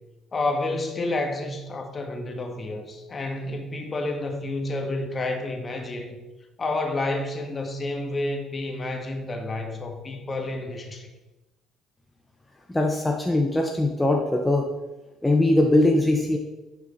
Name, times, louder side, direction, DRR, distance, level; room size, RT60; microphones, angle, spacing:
voice 1, 0.3-6.2 6.6-11.1, left 2 dB, 35° left, 1.7 m, -30 dB
voice 2, 12.7-14.7 15.2-16.4, left 1 dB, 10° left, 1.2 m, -21 dB
10.5 x 6.3 x 4.4 m
hypercardioid pair, 60°, 0 cm